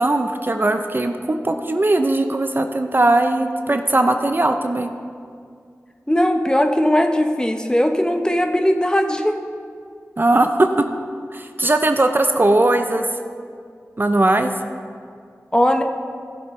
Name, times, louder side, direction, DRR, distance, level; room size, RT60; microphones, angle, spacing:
voice 1, 0.0-4.9 10.2-10.8 11.3-13.0 14.0-14.5, right 2 dB, 40° right, 6 dB, 0.5 m, -19 dB
voice 2, 6.1-9.4 15.5-15.8, equal, 15° left, 5 dB, 0.8 m, -18 dB
15.5 x 7.3 x 3.2 m, 2.2 s
cardioid pair, 45°, 6 cm